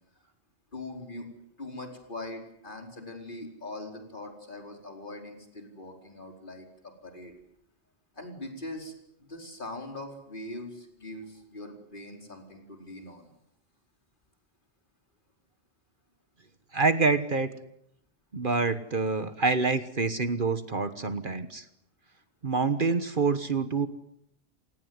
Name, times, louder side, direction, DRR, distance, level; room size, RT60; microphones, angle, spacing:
voice 1, 0.7-1.3 1.6-7.3 8.1-8.9 9.2-13.3, left 1 dB, 45° left, 3 dB, 4.8 m, -42 dB
voice 2, 16.7-17.5 18.3-21.6 22.4-23.9, right 4 dB, 50° right, 12 dB, 1.4 m, -26 dB
28.5 x 18.5 x 9.6 m, 0.78 s
omnidirectional pair, 1.1 m